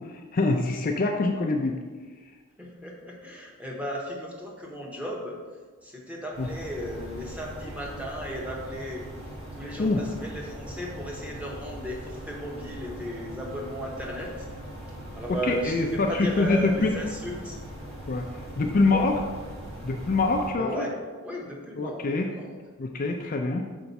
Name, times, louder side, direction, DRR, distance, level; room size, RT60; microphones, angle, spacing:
voice 1, 0.0-1.8 6.4-6.5 9.8-10.0 15.4-16.9 18.1-19.2 19.8-20.7 21.8-22.3 22.8-23.6, left 3 dB, 40° left, 2 dB, 0.4 m, -25 dB
voice 2, 2.6-5.4 5.8-9.0 9.5-14.5 15.1-17.6 18.9-19.1 20.6-20.9 21.2-22.5, equal, 5° right, -2 dB, 0.9 m, -35 dB
sound 1, 6.3-20.5, equal, 25° right, 1.3 m, -40 dB
5.8 x 4.4 x 4.0 m, 1.4 s
head